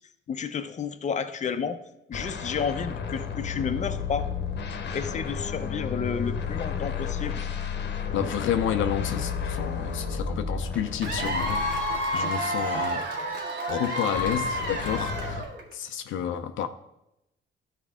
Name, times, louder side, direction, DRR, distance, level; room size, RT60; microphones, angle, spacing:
voice 1, 0.3-1.8 2.1-4.3 4.9-7.4, left 6 dB, 35° left, 0.7 m, -31 dB
sound 1, 2.1-12.4 14.2-15.4, left 6 dB, 60° left, 1.0 m, -32 dB
voice 2, 8.1-11.7 12.1-13.0 13.7-15.4 15.7-16.7, left 9 dB, 80° left, 0.6 m, -30 dB
sound 2, 10.7-13.4, left 1 dB, 5° left, 1.1 m, -44 dB
Cheering / Applause / Crowd, 11.0-15.7, equal, 60° right, 1.9 m, -29 dB
12.5 x 4.6 x 3.7 m
cardioid pair, 90°, 20 cm